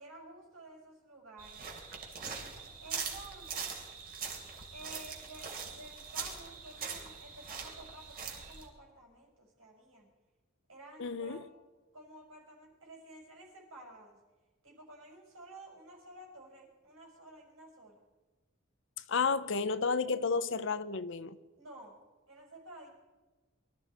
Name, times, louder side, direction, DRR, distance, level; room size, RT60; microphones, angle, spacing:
voice 1, 0.0-1.6 2.8-3.7 4.7-10.1 10.7-11.5 11.9-14.2 14.6-18.0 20.1-20.2 21.6-22.0 22.3-22.9, right 1 dB, 90° right, 5.3 m, -52 dB
sound 1, 1.4-8.7, right 5 dB, 50° right, 3.2 m, -42 dB
voice 2, 11.0-11.4 19.1-21.4, left 4 dB, 65° left, 0.8 m, -31 dB
23.5 x 13.0 x 4.4 m
head